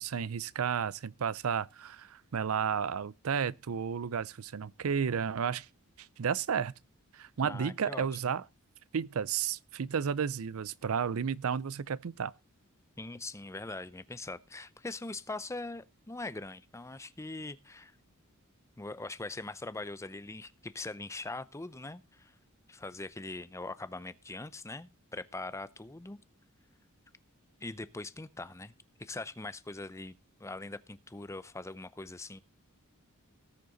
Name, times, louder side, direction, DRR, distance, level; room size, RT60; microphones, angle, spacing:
voice 1, 0.0-5.7 6.0-6.7 7.1-8.4 8.9-12.3, right 7 dB, 65° right, 0.5 m, -32 dB
voice 2, 7.4-8.1 13.0-17.9 18.8-22.3 22.7-26.2 27.6-28.7 29.0-30.1 30.4-32.4, left 2 dB, 15° left, 0.6 m, -42 dB
18.5 x 6.7 x 3.9 m
head